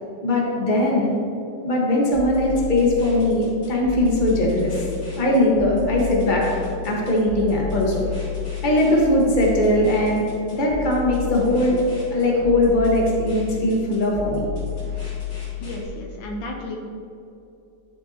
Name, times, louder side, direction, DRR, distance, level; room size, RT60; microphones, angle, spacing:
voice 1, 0.2-1.2 1.6-4.7 5.1-6.5 6.8-8.1 8.6-10.2 10.5-11.8 12.1-14.5, left 1 dB, 25° left, -3 dB, 1.4 m, -20 dB
sound 1, 2.1-15.8, left 8 dB, 60° left, 2.7 m, -32 dB
voice 2, 15.6-16.8, left 1 dB, 75° left, 1 dB, 1.6 m, -33 dB
11.0 x 6.5 x 2.8 m, 2.7 s
omnidirectional pair, 2.0 m